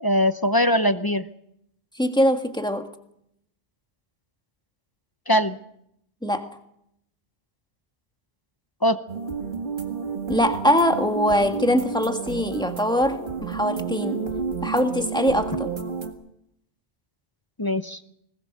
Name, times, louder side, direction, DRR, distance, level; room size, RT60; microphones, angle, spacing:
voice 1, 0.0-1.2 5.3-5.6 8.8-9.0 17.6-18.0, equal, 25° left, 11 dB, 0.7 m, -21 dB
voice 2, 2.0-2.9 6.2-6.5 10.3-14.2 14.6-15.7, equal, 5° left, 6 dB, 1.6 m, -22 dB
sound 1, 9.1-16.1, right 5 dB, 55° right, 2.1 m, -31 dB
20.5 x 20.0 x 6.6 m, 0.76 s
omnidirectional pair, 1.1 m